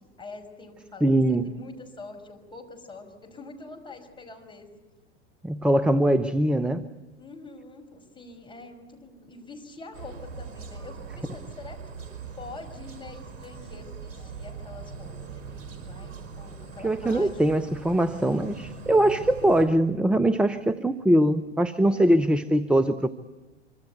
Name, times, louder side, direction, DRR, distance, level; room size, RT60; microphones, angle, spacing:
voice 1, 0.0-4.7 7.2-12.0 12.4-17.6 21.8-22.3, left 3 dB, 15° left, 3 dB, 5.7 m, -45 dB
voice 2, 1.0-1.5 5.4-6.9 16.8-23.1, right 1 dB, 5° right, 11 dB, 0.8 m, -22 dB
sound 1, 9.9-19.7, right 5 dB, 50° right, 5.2 m, -41 dB
25.5 x 25.0 x 8.1 m, 1.1 s
figure-of-eight pair, 85°, 33 cm